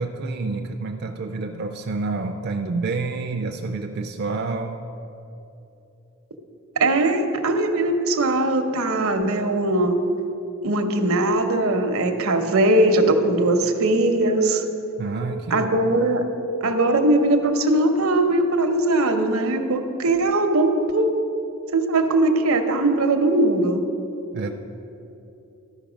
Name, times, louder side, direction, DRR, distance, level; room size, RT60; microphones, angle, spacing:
voice 1, 0.0-4.8 15.0-15.7 24.3-24.5, right 3 dB, 50° right, 4 dB, 0.4 m, -28 dB
voice 2, 6.8-10.0 10.6-14.7 15.5-16.3 16.6-21.1 21.7-23.8, right 2 dB, 80° right, 6 dB, 0.8 m, -20 dB
13.0 x 5.5 x 5.0 m, 2.9 s
head